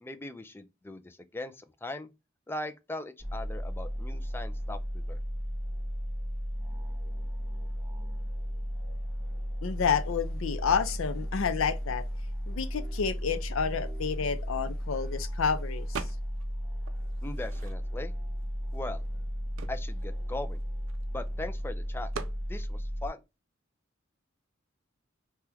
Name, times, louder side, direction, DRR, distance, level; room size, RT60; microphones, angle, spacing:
voice 1, 0.0-2.1 2.5-5.2 17.2-18.1 18.7-19.0 19.7-20.6 21.1-22.1 22.5-23.2, left 2 dB, 10° left, 0.3 m, -39 dB
sound 1, 3.2-23.1, equal, 10° right, 1.4 m, -35 dB
voice 2, 9.6-12.0 12.5-16.0, left 6 dB, 85° left, 0.5 m, -30 dB
sound 2, 15.9-16.5 16.9-18.1 18.7-18.8 19.1-21.3 22.1-22.4, right 5 dB, 75° right, 0.4 m, -42 dB
2.9 x 2.2 x 3.3 m
head